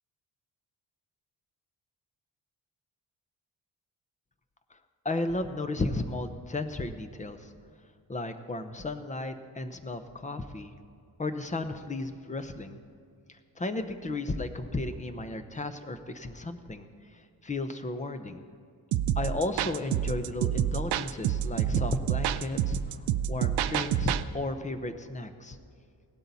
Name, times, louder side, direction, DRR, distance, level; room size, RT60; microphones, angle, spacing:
voice 1, 5.0-7.5 8.1-10.7 11.2-12.8 13.3-18.5 19.2-22.8 23.3-25.6, left 2 dB, 20° left, 9 dB, 0.7 m, -34 dB
sound 1, 18.9-24.2, right 10 dB, 85° right, 0.5 m, -28 dB
17.0 x 12.0 x 4.1 m, 2.4 s
cardioid pair, 140°, 39 cm